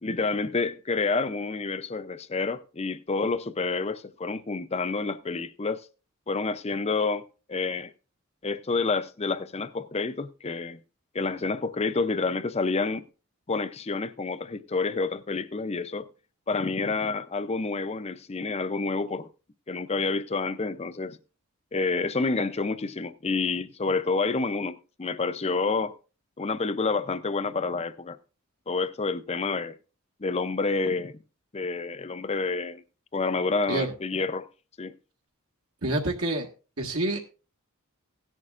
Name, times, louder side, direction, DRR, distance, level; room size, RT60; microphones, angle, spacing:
voice 1, 0.0-5.9 6.3-7.2 7.5-7.9 8.4-10.8 11.1-13.0 13.5-16.1 16.5-19.3 19.7-21.2 21.7-25.9 26.4-28.2 28.7-29.8 30.2-31.2 31.5-32.8 33.1-34.5 34.8-34.9, left 4 dB, 30° left, 0.5 m, -28 dB
voice 2, 35.8-36.5 36.8-37.2, right 2 dB, 70° right, 1.7 m, -27 dB
16.5 x 11.0 x 2.5 m
head